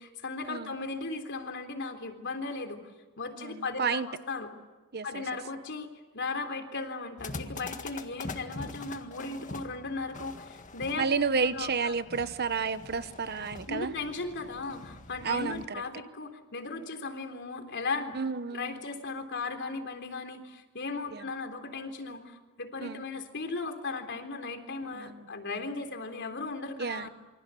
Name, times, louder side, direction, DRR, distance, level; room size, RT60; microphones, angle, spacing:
voice 1, 0.0-2.9 3.2-4.5 5.0-11.1 11.4-11.9 13.7-18.2 18.5-27.1, left 3 dB, 55° left, 6 dB, 3.7 m, -37 dB
voice 2, 3.4-4.1 4.9-5.2 11.0-13.9 15.2-15.8 18.1-18.8 21.1-21.2 22.8-23.0 24.9-25.2 26.8-27.1, right 5 dB, 50° right, 13 dB, 1.0 m, -31 dB
sound 1, 7.2-15.7, left 2 dB, 35° left, 1.8 m, -44 dB
28.0 x 25.0 x 8.4 m, 1.2 s
head